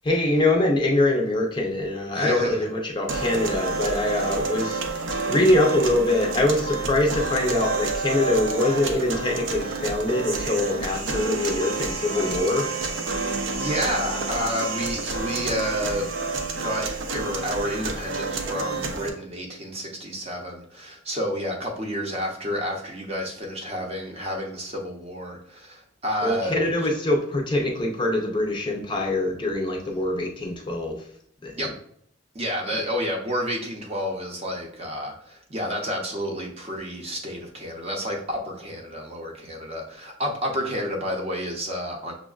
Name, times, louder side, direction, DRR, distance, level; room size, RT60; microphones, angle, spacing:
voice 1, 0.0-4.8 5.3-12.7 26.2-31.0 31.4-31.5, left 2 dB, 25° left, 0 dB, 0.4 m, -23 dB
voice 2, 2.1-2.7 13.6-16.1 16.6-16.8 17.1-26.7 31.6-31.7 32.3-42.1, equal, 30° right, 1 dB, 0.6 m, -30 dB
sound 1, 3.1-19.1, right 3 dB, 75° right, 0.5 m, -29 dB
6.0 x 2.0 x 2.4 m, 0.67 s
head